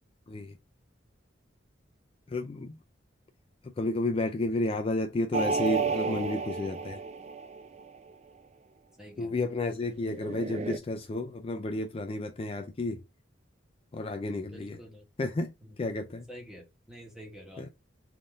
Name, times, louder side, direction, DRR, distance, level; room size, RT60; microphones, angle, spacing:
voice 1, 2.3-2.7 3.8-7.0 9.2-13.0 13.9-14.8 15.2-15.5 15.8-16.2 17.6-17.7, left 2 dB, 30° left, 0.4 m, -31 dB
sound 1, 5.3-8.0 10.1-10.8, right 5 dB, 35° right, 0.4 m, -32 dB
voice 2, 9.0-9.4 14.5-15.0 15.6-15.8 16.3-17.7, equal, 5° right, 1.1 m, -48 dB
3.6 x 2.6 x 3.5 m
head